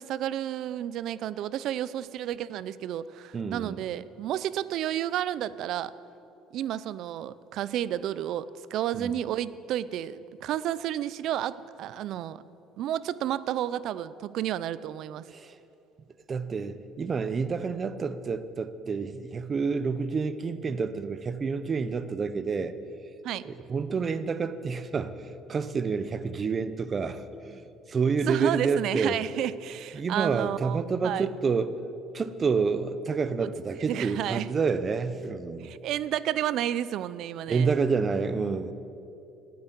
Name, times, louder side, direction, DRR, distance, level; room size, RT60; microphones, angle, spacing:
voice 1, 0.0-5.9 6.5-12.4 12.8-15.2 23.2-23.4 28.3-31.3 33.4-34.5 35.6-37.7, right 11 dB, 65° right, 17 dB, 0.5 m, -31 dB
voice 2, 3.3-3.8 8.9-9.1 15.3-15.6 16.3-22.7 23.4-29.2 29.9-31.8 32.1-35.7 37.5-38.7, right 5 dB, 35° right, 13 dB, 0.8 m, -29 dB
12.5 x 9.5 x 9.3 m, 2.9 s
cardioid pair, 110°, 0 cm